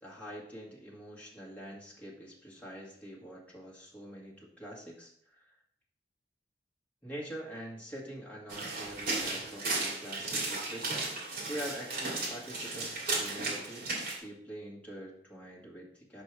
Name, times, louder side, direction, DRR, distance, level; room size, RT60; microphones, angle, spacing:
voice 1, 0.0-5.4 7.0-11.0 11.5-13.9 14.2-16.2, equal, 10° left, -5 dB, 1.8 m, -45 dB
sound 1, 8.5-14.2, right 3 dB, 50° right, 2.4 m, -35 dB
5.2 x 4.6 x 6.3 m, 0.64 s
head